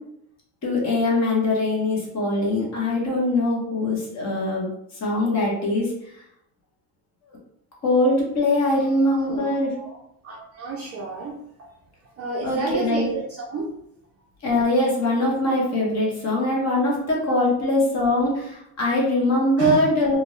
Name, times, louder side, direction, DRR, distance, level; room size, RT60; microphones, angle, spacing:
voice 1, 0.6-4.7 5.0-5.9 7.8-9.7 12.4-13.1 14.4-20.2, left 1 dB, 35° left, -3 dB, 1.0 m, -22 dB
voice 2, 8.7-10.0 10.2-11.4 12.2-13.7 19.6-19.8, right 3 dB, 35° right, -2 dB, 0.4 m, -31 dB
2.5 x 2.2 x 3.0 m, 0.77 s
cardioid pair, 145°, 45 cm